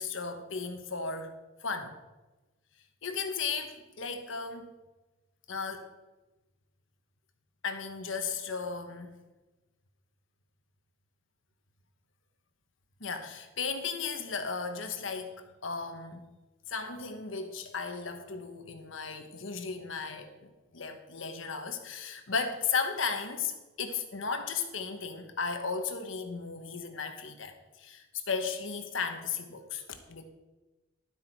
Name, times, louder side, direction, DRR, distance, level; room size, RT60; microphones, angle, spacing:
voice 1, 0.0-1.3 1.6-1.9 3.0-4.7 5.5-5.9 7.6-9.1 13.0-16.3 16.7-30.2, left 5 dB, 80° left, 7 dB, 1.2 m, -35 dB
12.0 x 8.2 x 4.6 m, 1.1 s
head